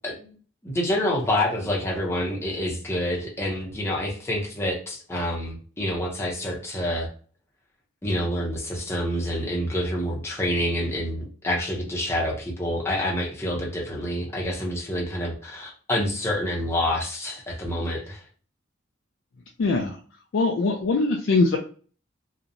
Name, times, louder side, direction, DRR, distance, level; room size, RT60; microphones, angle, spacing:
voice 1, 0.0-0.3 0.6-7.1 8.0-18.2, left 1 dB, 15° left, -3 dB, 0.6 m, -27 dB
voice 2, 19.6-20.0 20.3-21.6, left 3 dB, 65° left, 1 dB, 0.4 m, -22 dB
2.7 x 2.1 x 2.5 m, 0.41 s
head